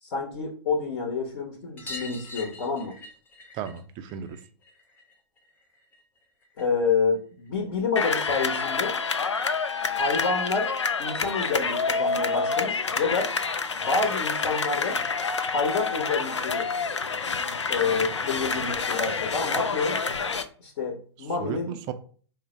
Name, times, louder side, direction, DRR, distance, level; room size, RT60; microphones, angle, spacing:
voice 1, 0.0-2.9 6.6-8.9 9.9-10.7 11.0-13.3 13.8-15.0 15.4-16.7 17.4-20.0 20.6-21.8, left 4 dB, 50° left, 1 dB, 1.0 m, -28 dB
sound 1, 1.8-6.9 7.2-8.3 9.7-9.8 10.0-10.1 10.4-10.5 11.8-11.9 12.2-12.3 12.6-12.7 13.9-14.0 14.8-14.9, left 2 dB, 15° left, 0.8 m, -45 dB
voice 2, 3.5-4.4 21.2-21.9, right 9 dB, 30° right, 9 dB, 0.5 m, -35 dB
sound 2, 8.0-20.4, left 5 dB, 80° left, 0.4 m, -28 dB
4.0 x 2.1 x 4.2 m, 0.43 s
figure-of-eight pair, 105°, 15 cm